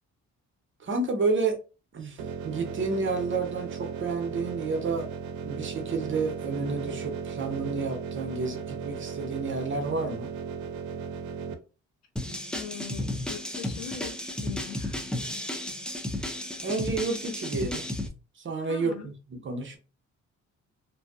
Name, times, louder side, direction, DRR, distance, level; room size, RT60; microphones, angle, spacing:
voice 1, 0.8-1.6 1.9-5.1 5.4-10.3 16.2-16.4 16.6-17.8 18.4-19.8, right 4 dB, 40° right, 0.8 m, -30 dB
sound 1, 2.2-11.5, right 6 dB, 80° right, 0.5 m, -36 dB
sound 2, 12.2-18.1, left 1 dB, 5° left, 0.4 m, -33 dB
voice 2, 12.5-15.3 18.7-19.1, left 7 dB, 60° left, 0.7 m, -41 dB
2.6 x 2.3 x 2.3 m
cardioid pair, 90°, 30 cm